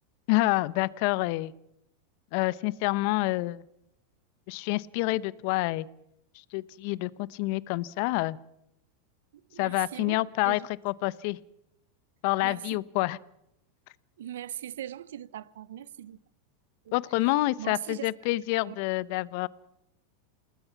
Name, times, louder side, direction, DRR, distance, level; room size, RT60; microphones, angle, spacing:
voice 1, 0.3-1.5 2.3-3.6 4.5-5.9 6.5-8.4 9.6-11.4 12.2-13.2 16.9-19.5, left 20 dB, 60° left, 0.9 m, -27 dB
voice 2, 9.5-10.2 10.4-10.6 12.4-12.8 14.2-16.2 17.6-18.1 18.6-18.8, right 11 dB, 75° right, 0.8 m, -39 dB
28.0 x 19.5 x 5.9 m
hypercardioid pair, 100°, 0 cm